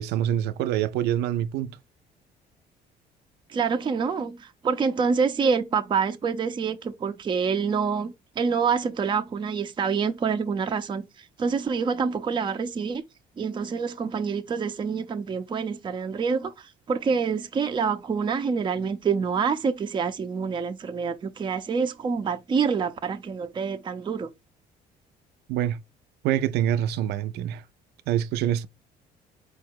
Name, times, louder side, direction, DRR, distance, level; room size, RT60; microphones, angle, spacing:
voice 1, 0.0-1.8 25.5-25.8 26.2-27.6 28.1-28.7, right 11 dB, 80° right, 0.4 m, -25 dB
voice 2, 3.5-13.0 13.4-24.3, right 5 dB, 30° right, 0.5 m, -27 dB
4.7 x 2.1 x 4.5 m
cardioid pair, 110°, 17 cm